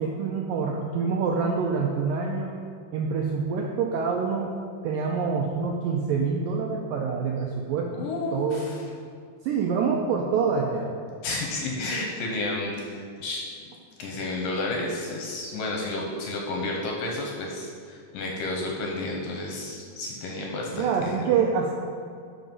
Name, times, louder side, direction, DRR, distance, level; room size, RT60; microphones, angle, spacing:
voice 1, 0.0-2.5 2.9-4.6 4.8-8.6 9.4-10.9 20.7-21.7, right 5 dB, 90° right, 0 dB, 2.0 m, -26 dB
voice 2, 7.9-8.8 11.2-13.4 14.0-21.2, left 2 dB, 70° left, 0 dB, 2.3 m, -31 dB
12.0 x 5.2 x 5.4 m, 2.3 s
omnidirectional pair, 4.8 m